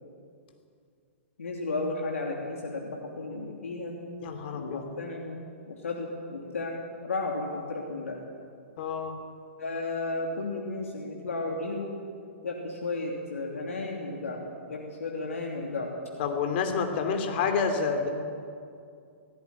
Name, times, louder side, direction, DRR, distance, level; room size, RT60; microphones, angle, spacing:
voice 1, 1.4-4.0 4.5-5.4 5.7-8.2 9.6-11.9 12.4-15.9, left 2 dB, 90° left, -1 dB, 3.1 m, -34 dB
voice 2, 4.2-4.8 8.8-9.1 16.2-18.1, left 5 dB, 50° left, 5 dB, 3.2 m, -28 dB
17.0 x 16.5 x 9.8 m, 2.4 s
hypercardioid pair, 135°, 7 cm